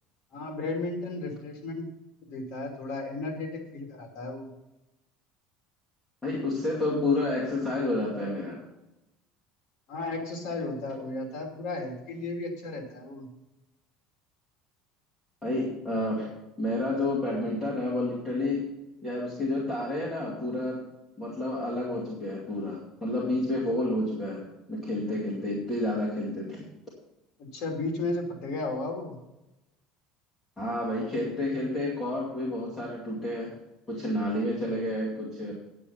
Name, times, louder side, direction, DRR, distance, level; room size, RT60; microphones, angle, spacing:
voice 1, 0.3-1.9 2.3-4.5 9.9-13.3 27.4-29.2, left 2 dB, 50° left, 2 dB, 2.8 m, -34 dB
voice 2, 6.2-8.6 15.4-16.3 16.6-18.7 19.0-20.9 21.2-26.7 30.6-33.6 33.9-35.5, left 1 dB, 10° left, -7 dB, 2.4 m, -30 dB
9.8 x 8.5 x 5.6 m, 0.95 s
cardioid pair, 165°, 0 cm